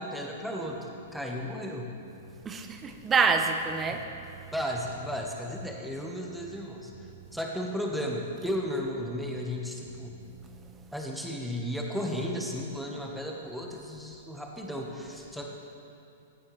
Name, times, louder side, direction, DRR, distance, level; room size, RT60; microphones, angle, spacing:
voice 1, 0.0-1.9 4.5-6.9 7.3-10.2 10.9-15.5, equal, ahead, -1 dB, 1.4 m, -34 dB
voice 2, 2.4-4.1 4.4-4.5 10.2-10.9, right 5 dB, 20° right, 6 dB, 0.8 m, -28 dB
16.0 x 8.4 x 3.3 m, 2.8 s
hypercardioid pair, 110°, 0 cm